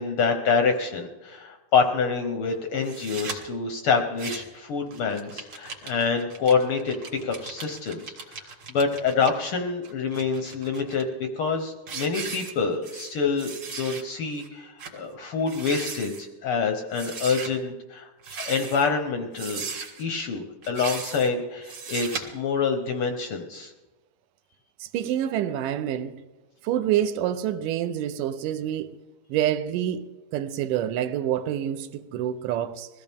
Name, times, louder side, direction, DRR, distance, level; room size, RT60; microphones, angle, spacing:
voice 1, 0.0-7.0 7.2-8.4 8.7-13.5 13.8-18.1 18.4-19.6 20.0-23.7, left 5 dB, 70° left, 1.3 m, -26 dB
sound 1, 2.8-3.4 4.0-4.6 4.9-9.3 9.8-11.0 11.5-11.6 11.9-13.1 13.4-14.0 14.4-14.5 14.8-15.0 15.4-16.2 16.9-17.5 18.2-18.9 19.3-20.0 20.6-21.3 21.6-22.2, right 5 dB, 50° right, 2.8 m, -37 dB
voice 2, 24.8-26.1 26.6-29.0 29.3-32.9, right 11 dB, 85° right, 2.3 m, -27 dB
21.5 x 15.0 x 3.6 m
omnidirectional pair, 3.7 m